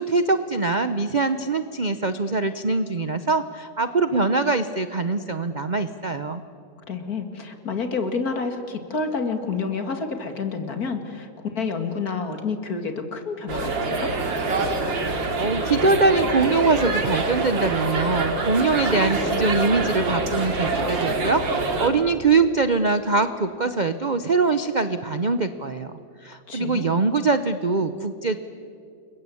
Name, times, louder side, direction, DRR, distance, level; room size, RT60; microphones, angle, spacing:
voice 1, 0.0-6.4 15.4-25.9 26.2-28.4, right 3 dB, 45° right, 10 dB, 0.5 m, -23 dB
voice 2, 6.9-11.3 11.5-14.1 26.5-26.9, left 4 dB, 55° left, 7 dB, 2.6 m, -29 dB
sound 1, 13.5-21.9, right 3 dB, 85° right, 3.2 m, -25 dB
29.5 x 22.5 x 8.5 m, 2.5 s
omnidirectional pair, 2.0 m